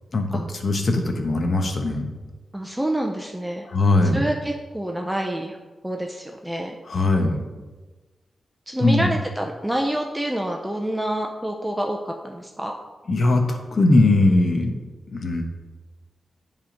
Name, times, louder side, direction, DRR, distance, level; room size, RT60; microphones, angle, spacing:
voice 1, 0.1-2.1 3.7-4.2 6.9-7.3 8.8-9.1 13.1-14.8 15.1-15.4, left 2 dB, 50° left, 4 dB, 1.0 m, -20 dB
voice 2, 2.5-3.6 4.1-5.6 5.8-6.8 8.7-12.8, right 1 dB, 5° right, 2 dB, 0.5 m, -27 dB
10.5 x 3.6 x 5.1 m, 1.3 s
wide cardioid pair, 140°, 0 cm